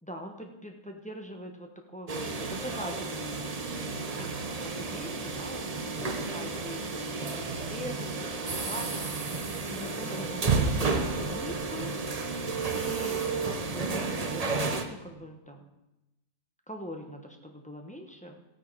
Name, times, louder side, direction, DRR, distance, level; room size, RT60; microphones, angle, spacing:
voice 1, 0.0-3.6 4.0-4.3 4.6-9.2 9.6-11.9 12.7-15.7 16.7-18.4, equal, 5° left, 3 dB, 0.7 m, -42 dB
sound 1, 2.1-14.8, right 4 dB, 50° right, 0.4 m, -32 dB
15.5 x 9.3 x 4.6 m, 0.96 s
omnidirectional pair, 2.0 m